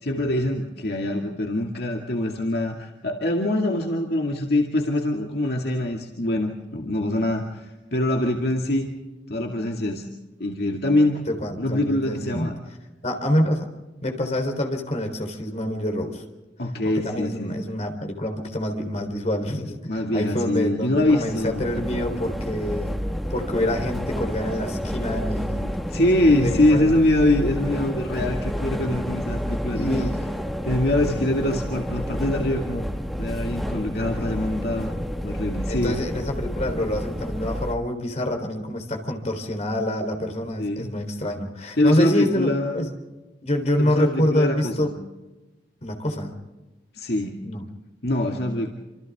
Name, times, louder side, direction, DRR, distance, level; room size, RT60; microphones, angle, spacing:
voice 1, 0.0-8.9 9.3-10.0 10.4-11.2 11.6-12.6 16.6-17.6 19.9-22.2 25.6-30.1 30.6-32.8 33.2-35.0 35.2-36.0 40.6-40.9 41.8-42.9 43.8-44.9 46.9-47.4 48.0-48.7, left 1 dB, 60° left, 1 dB, 2.3 m, -24 dB
voice 2, 11.3-12.6 13.0-13.7 14.0-16.2 16.8-23.0 23.3-25.6 26.3-26.9 29.8-30.1 34.0-34.1 35.7-42.9 43.4-44.9 45.8-46.3 47.4-47.6, left 1 dB, 40° left, 4 dB, 3.8 m, -26 dB
sound 1, 20.8-37.7, equal, ahead, 1.6 m, -29 dB
28.0 x 27.0 x 3.7 m, 1.1 s
head